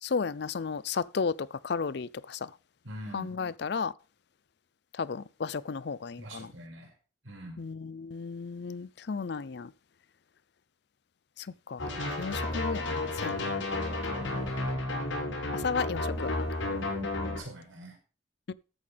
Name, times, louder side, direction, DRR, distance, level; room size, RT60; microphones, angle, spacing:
voice 1, 0.0-1.3 1.6-2.4 3.1-3.9 5.0-6.5 7.6-9.7 11.7-13.6 14.2-14.4 15.6-16.5 18.5-18.6, left 5 dB, 55° left, 0.4 m, -34 dB
voice 2, 2.8-3.4 6.2-6.9 7.2-7.6 14.3-14.5 17.4-18.0, right 1 dB, 80° right, 5.4 m, -44 dB
sound 1, 11.8-17.4, left 2 dB, 80° left, 5.8 m, -32 dB
13.5 x 8.8 x 3.4 m
head